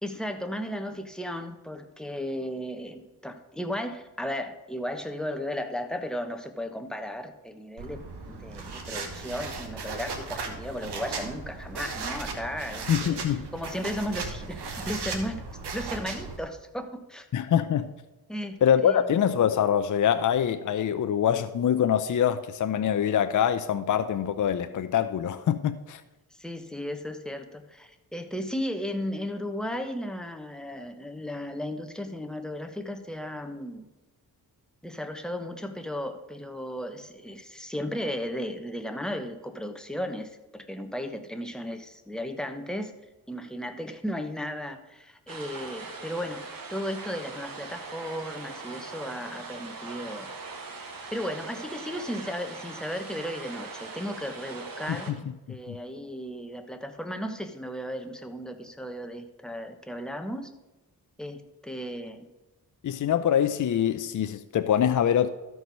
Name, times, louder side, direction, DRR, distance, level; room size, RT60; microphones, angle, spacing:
voice 1, 0.0-13.2 13.5-15.4 15.7-17.3 18.3-19.1 26.3-33.9 34.8-42.9 43.3-50.3 50.7-60.5 61.2-62.3, equal, ahead, 1.0 m, -35 dB
sound 1, 7.8-16.4, right 4 dB, 90° right, 1.3 m, -36 dB
voice 2, 12.9-13.5 17.3-17.9 18.6-26.0 55.7-55.8 62.8-65.3, left 9 dB, 50° left, 0.5 m, -24 dB
sound 2, 45.3-55.1, right 4 dB, 60° right, 1.6 m, -41 dB
13.0 x 4.7 x 5.4 m
cardioid pair, 75°, 39 cm